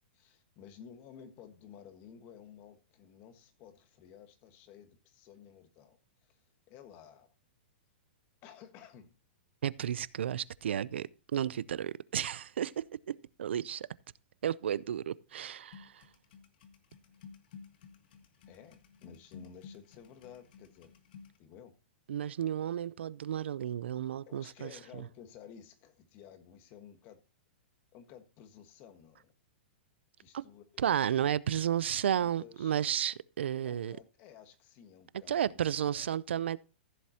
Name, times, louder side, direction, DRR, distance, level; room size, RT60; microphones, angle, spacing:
voice 1, 0.1-6.4 6.7-7.3 8.4-9.1 18.5-20.9 21.4-21.7 24.2-27.2 27.9-29.3 30.2-30.8 31.6-32.8 33.6-36.2, left 8 dB, 30° left, 1.4 m, -54 dB
voice 2, 9.6-13.9 14.4-16.0 22.1-24.7 30.3-30.4 30.8-34.0 35.3-36.6, right 9 dB, 85° right, 0.5 m, -32 dB
sound 1, 15.7-21.4, left 6 dB, 55° left, 1.6 m, -53 dB
14.5 x 7.5 x 2.8 m
hypercardioid pair, 160°, 6 cm